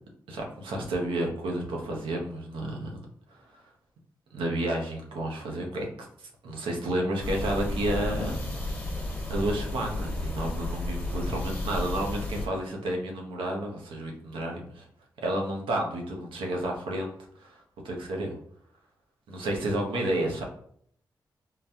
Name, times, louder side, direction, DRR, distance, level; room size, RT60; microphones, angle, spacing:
voice 1, 0.3-3.0 4.3-5.9 6.2-8.3 9.3-14.9 15.2-17.1 17.4-17.6 17.8-18.4 19.3-20.4, right 1 dB, 85° right, 0 dB, 0.7 m, -31 dB
sound 1, 7.2-12.5, left 1 dB, 20° left, 1.2 m, -32 dB
3.9 x 2.2 x 2.7 m, 0.64 s
supercardioid pair, 40°, 9 cm